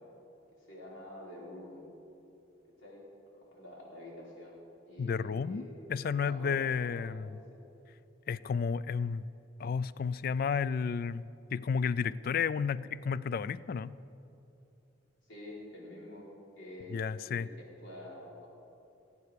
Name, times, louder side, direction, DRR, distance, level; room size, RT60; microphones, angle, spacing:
voice 1, 0.7-1.8 2.8-3.0 3.4-4.6 4.9-5.8 6.1-7.2 15.2-16.3 16.6-18.5, left 1 dB, 75° left, -4 dB, 4.3 m, -47 dB
voice 2, 5.0-7.3 8.3-9.2 9.6-11.2 11.5-14.0 16.9-17.5, left 6 dB, 50° left, 18 dB, 0.3 m, -32 dB
18.0 x 8.5 x 6.8 m, 2.8 s
head